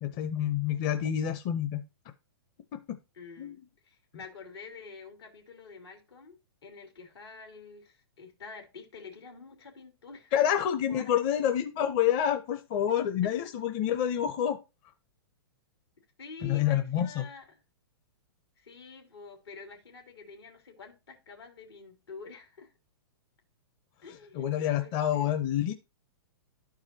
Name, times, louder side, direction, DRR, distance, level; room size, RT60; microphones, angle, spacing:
voice 1, 0.0-1.8 2.7-2.8 3.4-3.5 10.3-14.6 16.4-17.2 24.3-25.7, left 10 dB, 35° left, 8 dB, 0.7 m, -28 dB
voice 2, 3.1-6.3 6.6-10.3 10.9-11.2 13.2-13.5 16.0-17.6 18.6-22.7 24.0-25.4, left 4 dB, 85° left, 4 dB, 2.9 m, -48 dB
12.0 x 4.8 x 2.8 m, 0.27 s
hypercardioid pair, 125°, 13 cm